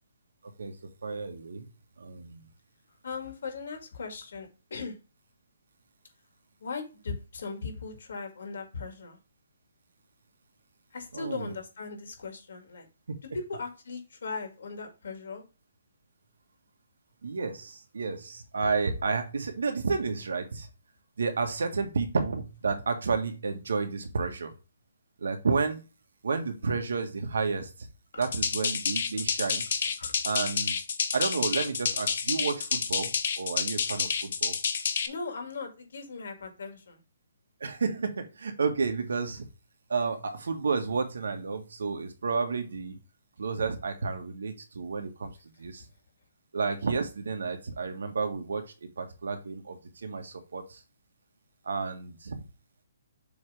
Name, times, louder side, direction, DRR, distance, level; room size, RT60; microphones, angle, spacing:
voice 1, 0.4-0.8 1.0-1.7 2.0-2.5 11.1-11.5 17.2-20.7 21.2-24.5 25.2-25.8 26.2-27.9 28.2-29.6 30.2-30.7 31.1-33.1 33.4-34.5 37.6-39.5 39.9-43.0 43.4-45.9 46.5-50.8 51.6-52.5, right 4 dB, 85° right, 6 dB, 1.5 m, -31 dB
voice 2, 3.0-5.0 6.6-9.2 10.9-12.9 13.3-15.4 28.1-28.2 30.0-30.1 35.0-37.0, left 4 dB, 60° left, 4 dB, 2.0 m, -38 dB
sound 1, 28.2-35.1, left 6 dB, 45° left, 0.8 m, -29 dB
7.0 x 3.3 x 4.8 m, 0.30 s
hypercardioid pair, 180°, 0 cm